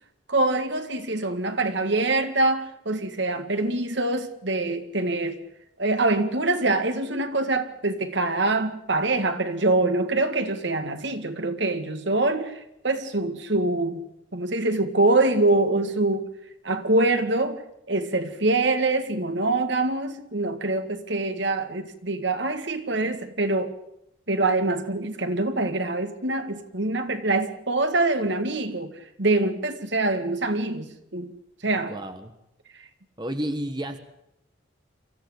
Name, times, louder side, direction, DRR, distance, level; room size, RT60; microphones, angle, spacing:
voice 1, 0.3-5.4 5.8-14.0 14.3-16.2 16.6-17.6 17.9-23.7 24.3-31.3 31.6-31.9, right 2 dB, 65° right, 2.0 m, -24 dB
voice 2, 31.9-32.3 33.2-34.0, right 1 dB, 20° right, 1.4 m, -31 dB
24.5 x 15.0 x 8.1 m
head